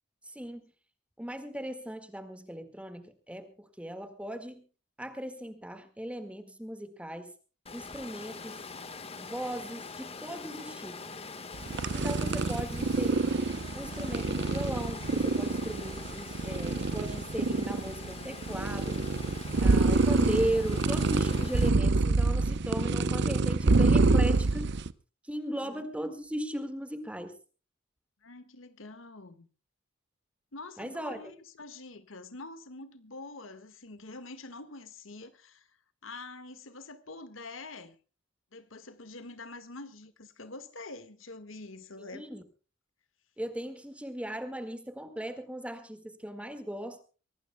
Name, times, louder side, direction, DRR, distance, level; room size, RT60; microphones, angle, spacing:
voice 1, 0.3-0.7 1.2-4.6 5.0-7.3 7.7-8.6 9.1-11.2 11.9-13.4 13.7-19.1 19.6-24.7 25.2-27.4 30.8-31.2 42.1-42.4 43.4-47.0, right 1 dB, 5° right, 1.8 m, -37 dB
Water, 7.7-21.7, left 4 dB, 30° left, 1.5 m, -44 dB
sound 1, 11.5-24.9, right 3 dB, 60° right, 0.7 m, -27 dB
voice 2, 11.7-12.5 25.5-25.9 28.2-29.5 30.5-35.7 36.0-38.0 38.5-42.3, left 3 dB, 75° left, 1.6 m, -46 dB
24.0 x 18.5 x 2.2 m
head